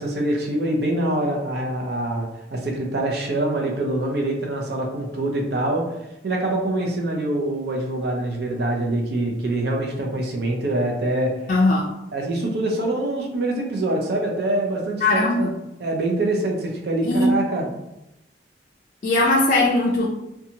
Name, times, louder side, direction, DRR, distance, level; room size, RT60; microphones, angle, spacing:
voice 1, 0.0-5.9 6.2-11.3 12.1-15.5 15.8-17.7, right 1 dB, 60° right, 0 dB, 0.6 m, -24 dB
voice 2, 11.5-11.9 15.0-15.5 17.0-17.3 19.0-20.1, left 2 dB, 45° left, -3 dB, 0.3 m, -19 dB
2.7 x 2.3 x 2.8 m, 0.90 s
head